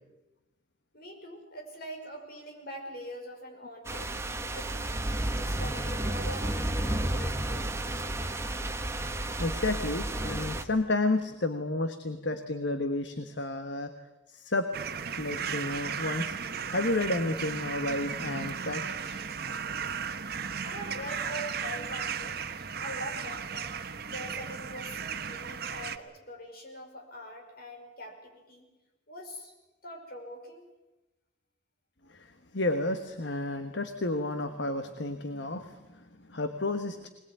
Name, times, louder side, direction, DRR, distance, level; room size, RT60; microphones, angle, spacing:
voice 1, 0.9-4.2 4.5-5.0 5.3-7.7 20.6-22.4 22.8-23.7 24.1-28.7 29.1-29.5 29.8-30.7, equal, 55° left, 2 dB, 5.4 m, -43 dB
sound 1, 3.8-10.6, right 1 dB, 15° right, 1.3 m, -32 dB
voice 2, 9.4-13.9 14.3-14.7 15.1-16.4 16.7-19.2 32.1-37.1, left 2 dB, 70° left, 8 dB, 1.3 m, -31 dB
sound 2, 14.7-26.0, right 7 dB, 55° right, 1.1 m, -35 dB
21.0 x 21.0 x 9.2 m, 1.0 s
head